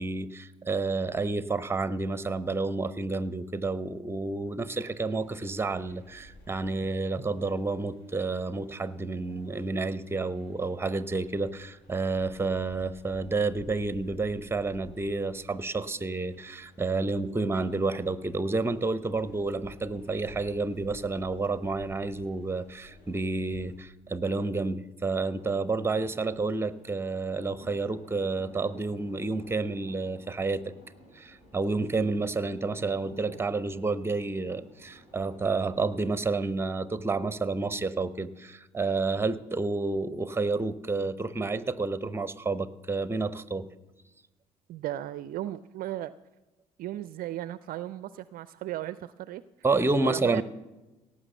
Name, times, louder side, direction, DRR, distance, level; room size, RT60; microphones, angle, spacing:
voice 1, 0.0-30.6 31.1-43.7 49.6-50.4, right 3 dB, 10° right, 16 dB, 0.7 m, -30 dB
sound 1, 5.0-23.7, left 1 dB, 60° left, 2.6 m, -54 dB
sound 2, 25.2-36.2, equal, 35° left, 5.7 m, -53 dB
voice 2, 44.7-46.1 46.8-49.4 50.0-50.4, right 13 dB, 45° right, 17 dB, 0.4 m, -36 dB
17.0 x 6.1 x 7.8 m, 1.1 s
figure-of-eight pair, 50°, 20 cm